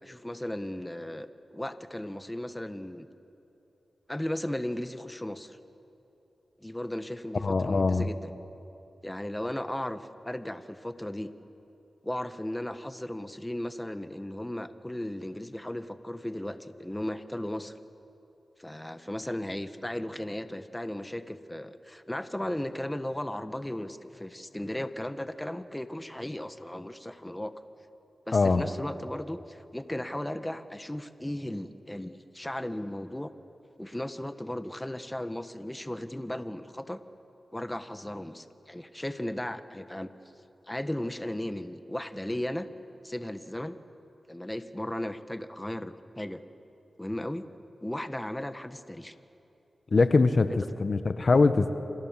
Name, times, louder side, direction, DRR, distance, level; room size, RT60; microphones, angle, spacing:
voice 1, 0.0-3.1 4.1-5.6 6.6-8.3 9.0-11.3 12.0-17.7 18.6-27.5 28.3-33.3 33.8-37.0 37.5-40.1 40.6-42.7 43.0-43.8 44.3-46.4 47.0-47.5 47.8-49.1 50.5-50.7, left 1 dB, 15° left, 10 dB, 1.5 m, -36 dB
voice 2, 7.4-8.0 28.3-28.6 49.9-50.5 50.8-51.7, left 3 dB, 60° left, 10 dB, 1.2 m, -22 dB
29.0 x 26.5 x 7.5 m, 2.9 s
cardioid pair, 40°, 0 cm